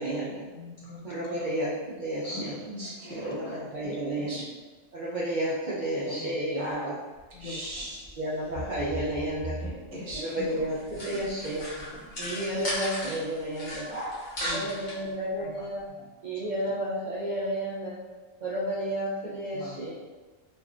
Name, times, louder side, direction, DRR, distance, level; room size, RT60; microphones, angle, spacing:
voice 1, 0.0-0.4 1.0-1.7 2.0-2.6 3.0-4.4 4.9-6.9 8.2-9.6 10.1-11.7 12.2-13.9 14.5-15.8 16.2-18.0 18.4-19.9, right 1 dB, 70° right, -7 dB, 0.4 m, -31 dB
voice 2, 0.5-2.9 3.5-3.7 4.2-4.3 6.1-6.7 7.3-7.8 8.6-8.7 11.2-11.4 11.8-12.6 14.4-14.8 15.4-15.7 16.0-16.1 16.4-16.5 19.5-19.9, left 2 dB, 85° left, -1 dB, 1.0 m, -45 dB
voice 3, 2.8-3.9 4.3-4.4 5.9-6.3 6.6-7.0 7.4-8.2 9.6-10.6 11.1-11.2 13.9-14.6, equal, 25° right, -6 dB, 0.8 m, -38 dB
sound 1, 7.2-7.4 7.7-8.1 8.5-10.5 10.9-11.3 11.7-11.8, right 2 dB, 25° left, 0.5 m, -38 dB
sound 2, 10.6-13.2 13.5-15.0, left 1 dB, 55° left, 1.1 m, -36 dB
3.2 x 2.4 x 2.4 m, 1.3 s
omnidirectional pair, 1.3 m